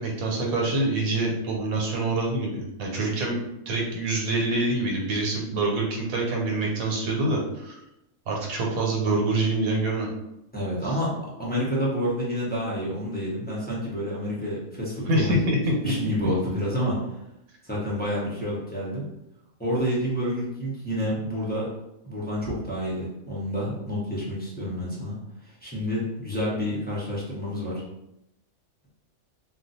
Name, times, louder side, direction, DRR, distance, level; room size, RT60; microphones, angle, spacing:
voice 1, 0.0-3.4 3.7-7.8 8.3-10.1 15.1-15.7, right 2 dB, 90° right, -1 dB, 1.2 m, -25 dB
voice 2, 10.5-15.4 15.8-17.0 17.6-19.0 19.6-21.7 22.0-25.2 25.4-27.8, equal, 10° left, -7 dB, 0.6 m, -29 dB
2.5 x 2.2 x 4.0 m, 0.87 s
omnidirectional pair, 1.4 m